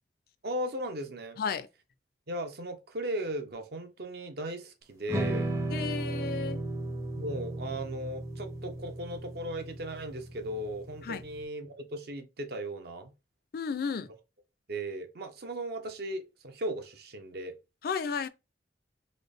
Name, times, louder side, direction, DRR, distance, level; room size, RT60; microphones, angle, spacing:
voice 1, 0.4-1.4 2.3-5.5 7.2-13.1 14.7-17.6, right 1 dB, 60° right, 0.7 m, -37 dB
voice 2, 1.4-1.7 5.7-6.6 11.0-11.2 13.5-14.1 17.8-18.3, left 5 dB, 55° left, 0.3 m, -33 dB
sound 1, 5.1-11.4, right 1 dB, 15° right, 0.5 m, -35 dB
3.9 x 2.1 x 3.3 m
head